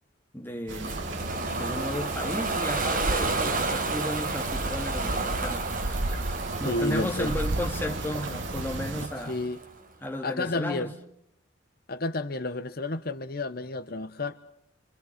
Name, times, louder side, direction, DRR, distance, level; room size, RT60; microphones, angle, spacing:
voice 1, 0.3-6.0 6.6-9.4 10.0-11.0, left 1 dB, 10° left, 2.2 m, -34 dB
sound 1, 0.7-9.1, right 2 dB, 70° right, 1.9 m, -34 dB
Ocean, 0.8-9.7, right 3 dB, 45° right, 4.4 m, -32 dB
voice 2, 6.6-7.3 9.3-9.6 10.2-10.9 11.9-14.4, left 2 dB, 50° left, 0.9 m, -31 dB
27.5 x 26.0 x 5.9 m
head